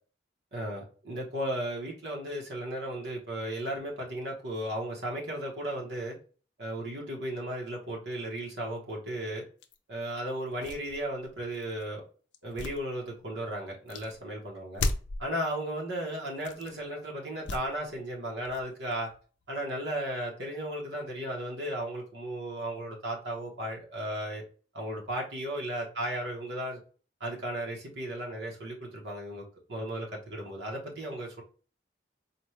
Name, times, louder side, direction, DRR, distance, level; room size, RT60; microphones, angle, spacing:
voice 1, 0.5-6.2 6.6-9.4 9.9-12.0 12.4-14.8 15.2-19.1 19.5-24.4 24.7-26.8 27.2-31.4, right 1 dB, 65° right, -1 dB, 1.0 m, -35 dB
sound 1, 9.6-9.8 10.4-11.8 12.3-13.4 13.9-14.2 14.7-15.3 16.3-16.8 17.4-18.0 18.3-19.6, left 3 dB, 70° left, 0.5 m, -36 dB
4.2 x 2.2 x 3.1 m, 0.39 s
head